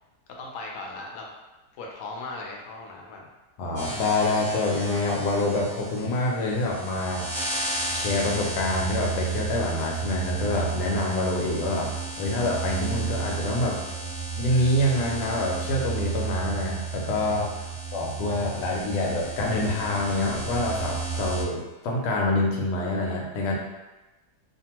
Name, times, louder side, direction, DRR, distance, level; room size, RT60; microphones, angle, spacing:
voice 1, 0.4-1.3 1.7-3.3, left 2 dB, 70° left, -1 dB, 0.8 m, -38 dB
voice 2, 3.6-7.3 7.9-11.9 12.2-13.8 14.4-17.5 17.9-23.6, left 2 dB, 85° left, -1 dB, 1.2 m, -26 dB
sound 1, 3.7-21.4, right 4 dB, 40° right, 0.8 m, -32 dB
2.6 x 2.4 x 2.8 m, 1.1 s
omnidirectional pair, 1.7 m